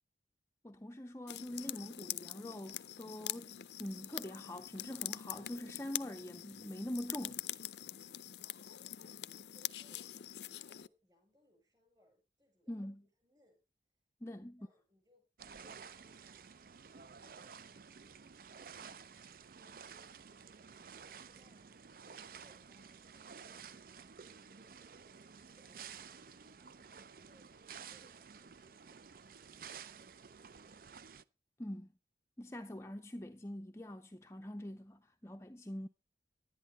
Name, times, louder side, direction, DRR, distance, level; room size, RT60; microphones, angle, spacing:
voice 1, 0.6-7.5 12.7-13.0 14.2-14.7 31.6-31.9 32.4-35.9, left 1 dB, 15° left, 0.5 m, -44 dB
sound 1, 1.3-10.9, left 13 dB, 75° left, 0.5 m, -44 dB
voice 2, 8.4-13.6 14.2-25.1 25.4-30.8, equal, 25° right, 6.9 m, -72 dB
sound 2, 15.4-31.2, right 6 dB, 55° right, 0.5 m, -53 dB
11.0 x 10.5 x 4.1 m
head